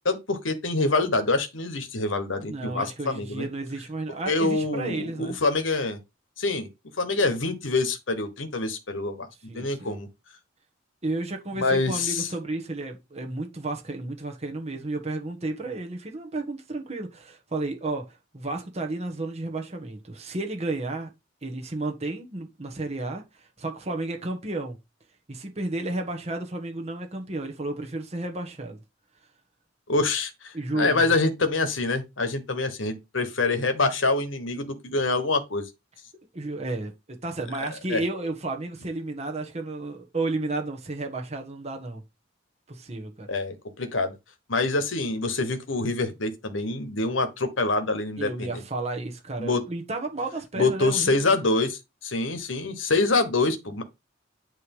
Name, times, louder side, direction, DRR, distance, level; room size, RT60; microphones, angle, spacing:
voice 1, 0.0-3.5 4.3-6.0 6.4-6.7 7.0-9.3 9.5-10.1 11.6-12.3 29.9-35.7 37.6-38.0 43.3-44.2 44.5-48.6 49.4-49.6 50.5-53.8, left 3 dB, 85° left, 1.4 m, -26 dB
voice 2, 2.5-5.4 9.5-10.0 11.0-21.1 21.4-24.8 25.3-28.8 30.5-31.0 36.3-42.0 42.7-43.3 48.2-51.3, right 2 dB, 35° right, 1.4 m, -32 dB
9.3 x 3.3 x 5.4 m
head